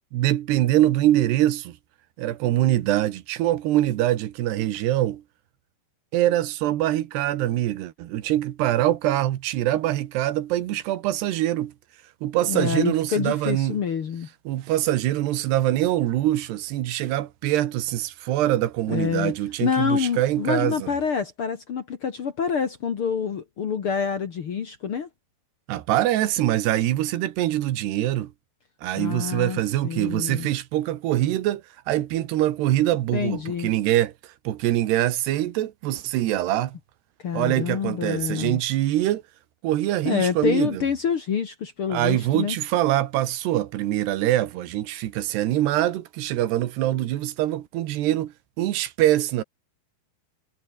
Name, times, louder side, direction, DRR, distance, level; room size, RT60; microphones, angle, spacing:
voice 1, 0.1-1.8 2.2-5.2 6.1-11.7 12.2-13.8 14.5-20.9 25.7-28.3 28.8-31.6 31.9-34.1 34.4-36.8 37.3-39.2 39.6-40.8 41.9-49.4, right 14 dB, 80° right, 3.5 m, -24 dB
voice 2, 12.4-14.3 18.9-19.3 19.6-25.1 28.9-30.5 33.1-33.7 37.2-38.6 40.0-42.6, left 7 dB, 55° left, 1.5 m, -27 dB
omnidirectional pair, 4.7 m